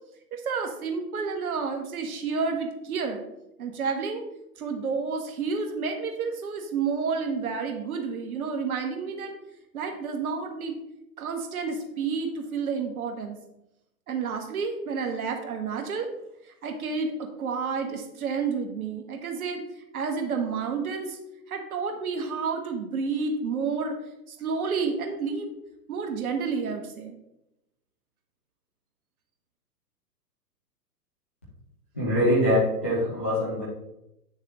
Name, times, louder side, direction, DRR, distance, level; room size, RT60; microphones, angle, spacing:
voice 1, 0.3-3.2 3.6-4.2 4.6-9.3 9.7-10.8 11.2-13.4 14.1-16.1 16.6-19.6 19.9-21.2 21.5-24.0 24.3-25.5 25.9-27.2, right 5 dB, 60° right, 3 dB, 1.7 m, -30 dB
voice 2, 31.9-33.6, equal, 10° left, -9 dB, 0.3 m, -23 dB
9.6 x 6.5 x 3.1 m, 0.86 s
figure-of-eight pair, 115°, 50 cm